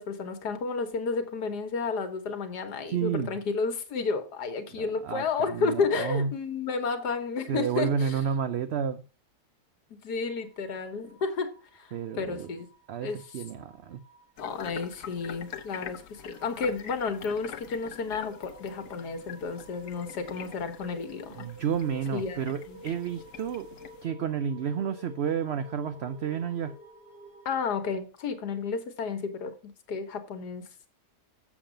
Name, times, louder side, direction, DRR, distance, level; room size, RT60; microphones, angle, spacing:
voice 1, 0.0-8.2 9.9-11.5 11.7-12.7 13.0-13.2 14.4-21.5 22.1-22.8 27.5-30.7, left 4 dB, 90° left, 1.8 m, -32 dB
voice 2, 2.9-3.3 4.7-6.3 7.5-9.0 11.9-12.5 12.9-14.0 21.4-23.7 24.0-26.7, right 7 dB, 60° right, 0.7 m, -31 dB
sound 1, 10.2-27.6, right 1 dB, 35° right, 5.1 m, -52 dB
sound 2, 14.4-24.0, left 9 dB, 70° left, 1.3 m, -45 dB
7.3 x 7.3 x 5.0 m
omnidirectional pair, 1.7 m